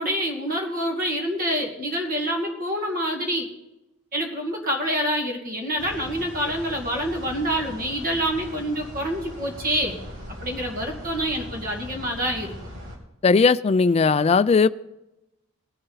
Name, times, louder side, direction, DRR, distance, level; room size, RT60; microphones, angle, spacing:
voice 1, 0.0-3.5 4.1-10.0 10.4-12.5, equal, 40° right, 1 dB, 2.3 m, -27 dB
sound 1, 5.8-13.0, equal, 65° right, 3.5 m, -39 dB
voice 2, 13.2-14.7, left 4 dB, 30° left, 14 dB, 0.3 m, -18 dB
20.0 x 7.7 x 4.0 m, 0.92 s
head